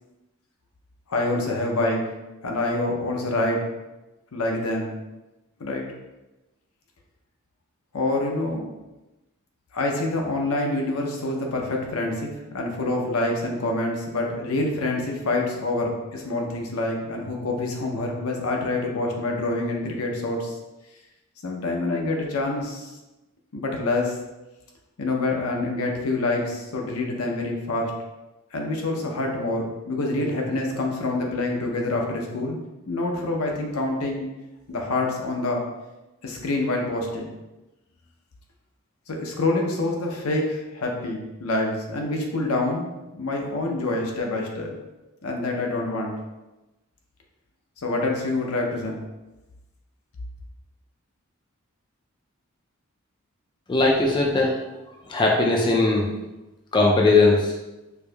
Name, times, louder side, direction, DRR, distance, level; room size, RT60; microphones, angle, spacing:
voice 1, 1.1-2.1 2.4-3.7 4.3-4.9 5.6-5.8 7.9-8.7 9.7-20.6 21.4-22.9 23.5-24.2 25.0-27.9 28.5-32.6 32.9-34.3 34.7-35.6 36.2-37.4 39.1-42.9 43.1-44.7 45.2-46.1 47.8-49.0, left 2 dB, 80° left, 0 dB, 0.6 m, -26 dB
voice 2, 53.7-54.6 55.1-56.1 56.7-57.5, left 2 dB, 20° left, -1 dB, 0.3 m, -19 dB
4.5 x 2.6 x 2.2 m, 1.0 s
head